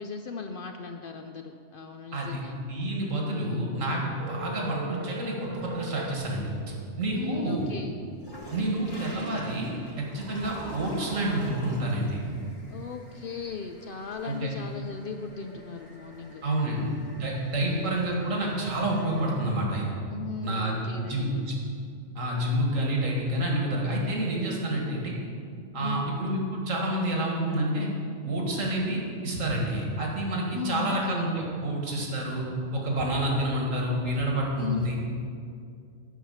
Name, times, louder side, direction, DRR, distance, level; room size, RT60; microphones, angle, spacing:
voice 1, 0.0-2.6 3.3-3.6 4.5-4.7 7.1-7.9 12.7-16.9 17.5-17.9 20.1-21.4 25.8-26.2 30.5-31.2 34.6-34.9, left 5 dB, 60° left, 5 dB, 0.6 m, -37 dB
voice 2, 2.7-5.4 5.6-6.5 7.0-7.6 8.5-9.7 10.0-12.2 14.2-14.5 16.4-16.9 17.1-19.9 20.4-21.6 22.2-25.2 25.7-27.9 28.2-32.4 32.7-35.0, right 1 dB, 80° right, -1 dB, 2.1 m, -28 dB
sound 1, 4.2-6.3, equal, 35° right, 0.5 m, -39 dB
sound 2, 5.7-6.7 7.1-19.4, equal, 20° left, 1.3 m, -46 dB
9.5 x 5.7 x 7.1 m, 2.4 s
omnidirectional pair, 1.3 m